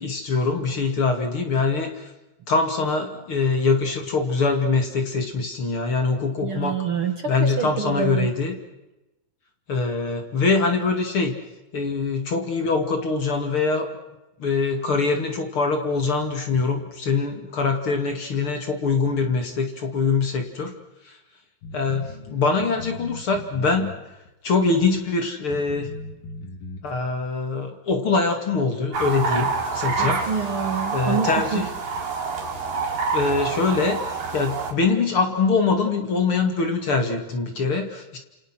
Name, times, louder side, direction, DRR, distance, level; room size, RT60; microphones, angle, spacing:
voice 1, 0.0-2.1 2.5-6.8 7.3-8.5 9.7-11.3 11.7-13.9 14.4-20.7 21.0-21.2 21.7-23.9 24.4-25.9 26.8-30.3 30.9-31.7 33.1-38.2, left 4 dB, 40° left, 5 dB, 2.9 m, -23 dB
voice 2, 6.4-8.3 30.0-31.7, right 6 dB, 50° right, 7 dB, 1.9 m, -27 dB
sound 1, 21.6-24.3 25.0-25.1 25.5-26.8, left 2 dB, 80° left, 4.4 m, -38 dB
sound 2, 28.9-34.7, right 4 dB, 75° right, 5.7 m, -27 dB
29.0 x 28.5 x 6.2 m, 1.0 s
omnidirectional pair, 4.0 m